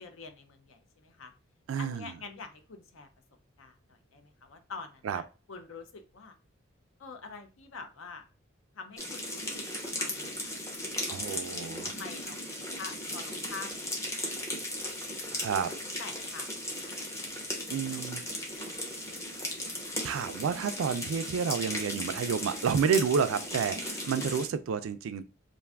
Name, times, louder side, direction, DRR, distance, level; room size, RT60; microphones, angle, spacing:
voice 1, 0.0-1.3 1.8-3.1 3.6-6.3 7.0-8.2 8.7-9.6 10.0-11.0 11.3-14.3 14.8-15.3 16.0-18.4 19.1-19.3, left 4 dB, 70° left, 0.5 m, -47 dB
voice 2, 1.7-2.1 5.0-5.2 11.1-11.9 15.3-15.7 17.7-18.2 20.0-25.2, right 6 dB, 75° right, 0.3 m, -30 dB
sound 1, 9.0-24.5, left 1 dB, 15° left, 0.6 m, -37 dB
2.5 x 2.3 x 3.3 m
head